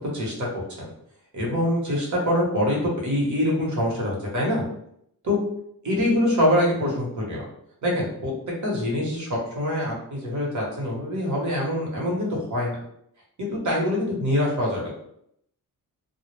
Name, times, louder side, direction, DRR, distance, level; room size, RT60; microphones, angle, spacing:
voice 1, 0.1-0.5 1.3-4.6 5.2-5.4 5.8-7.4 7.8-8.3 8.6-12.8 13.4-14.9, left 1 dB, 50° right, -3 dB, 1.0 m, -24 dB
2.2 x 2.1 x 3.1 m, 0.71 s
wide cardioid pair, 125°, 37 cm